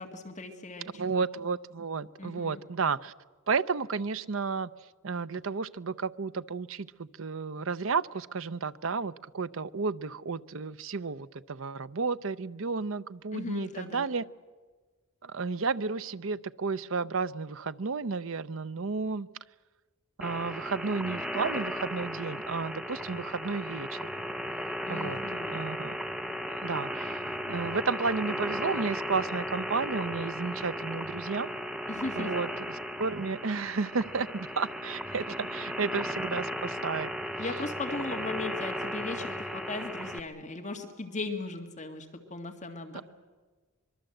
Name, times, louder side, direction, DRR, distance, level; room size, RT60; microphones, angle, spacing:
voice 1, 0.0-1.0 2.2-2.6 13.3-14.1 24.8-25.6 31.9-32.3 37.4-43.0, left 3 dB, 35° left, 4 dB, 2.0 m, -37 dB
voice 2, 0.9-3.1 3.5-4.7 5.0-14.2 15.2-19.3 20.2-24.0 24.9-25.2 25.5-26.0 26.6-27.2 27.5-31.5 32.2-37.1 42.9-43.0, right 4 dB, 70° right, 14 dB, 0.7 m, -32 dB
sound 1, 20.2-40.2, equal, 5° right, 0.7 m, -36 dB
24.5 x 22.5 x 7.9 m, 1.4 s
head